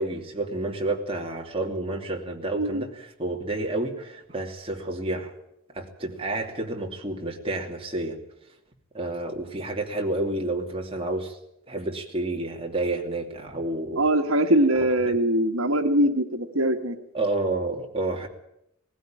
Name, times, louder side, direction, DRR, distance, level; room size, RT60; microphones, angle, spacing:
voice 1, 0.0-5.3 5.7-8.2 8.9-11.4 11.7-14.0 14.7-14.9 17.1-18.3, right 2 dB, 30° right, 1 dB, 2.8 m, -30 dB
voice 2, 14.0-16.9, right 1 dB, 85° right, 6 dB, 1.4 m, -22 dB
19.5 x 15.5 x 8.9 m, 0.81 s
head